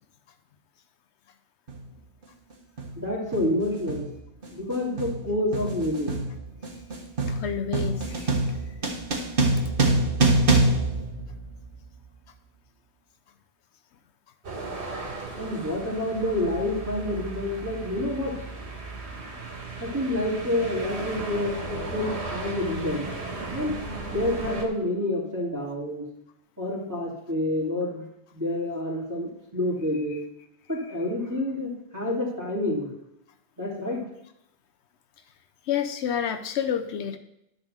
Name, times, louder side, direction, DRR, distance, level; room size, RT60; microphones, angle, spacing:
sound 1, 1.7-1.9 2.8-3.0 3.3-11.9, right 2 dB, 55° right, 1.4 m, -25 dB
voice 1, 3.0-4.1 4.5-6.1 15.4-18.4 19.8-23.1 23.5-23.8 24.1-26.0 26.6-28.0 28.3-30.2 30.7-32.9 33.6-34.0, left 1 dB, 15° right, -4 dB, 2.4 m, -28 dB
voice 2, 7.3-8.6 35.7-37.2, left 8 dB, 90° left, 8 dB, 0.9 m, -29 dB
sound 2, 14.4-24.6, right 3 dB, 80° right, 1.7 m, -36 dB
10.5 x 4.1 x 6.4 m, 0.79 s
omnidirectional pair, 1.1 m